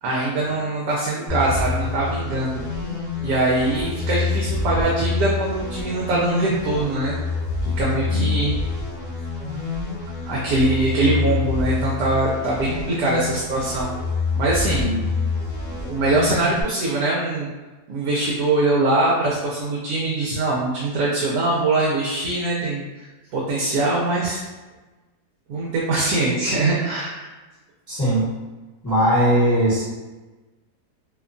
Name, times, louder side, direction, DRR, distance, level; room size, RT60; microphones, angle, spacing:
voice 1, 0.0-2.6 2.9-7.2 7.8-8.6 10.3-13.9 14.4-15.1 15.7-17.5 17.9-23.1 23.3-24.4 25.5-27.3, right 2 dB, 75° right, -4 dB, 1.1 m, -22 dB
sound 1, 1.3-16.6, left 4 dB, 45° left, 0.8 m, -27 dB
voice 2, 27.9-28.2 28.8-29.9, equal, 15° left, -10 dB, 0.6 m, -19 dB
2.8 x 2.2 x 2.5 m, 1.2 s
omnidirectional pair, 1.7 m